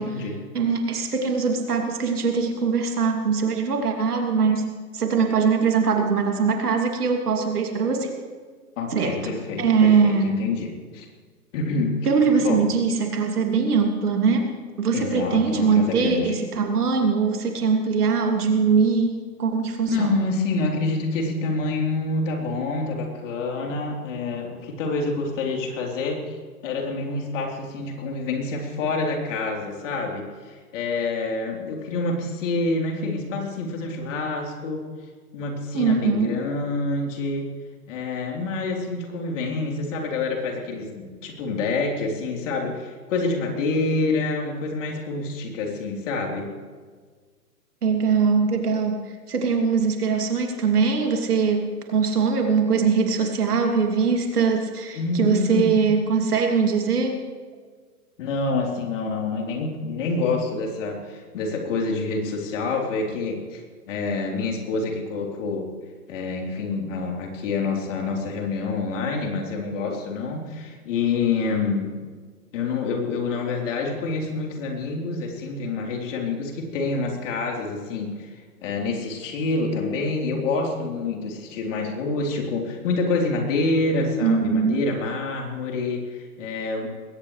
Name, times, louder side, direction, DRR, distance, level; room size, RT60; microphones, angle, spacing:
voice 1, 0.0-0.4 8.8-11.1 11.5-12.0 12.4-12.6 14.9-16.3 19.9-26.4 26.6-34.8 35.3-37.5 37.9-46.5 54.9-55.8 58.2-65.6 66.1-71.9 72.5-78.3 78.6-86.9, left 3 dB, 50° left, 0 dB, 3.9 m, -27 dB
voice 2, 0.5-4.6 4.9-8.1 8.9-10.4 12.0-20.2 35.7-36.4 47.8-57.2 84.2-84.9, right 5 dB, 70° right, 3 dB, 2.9 m, -22 dB
21.0 x 18.0 x 3.3 m, 1.6 s
figure-of-eight pair, 120°, 47 cm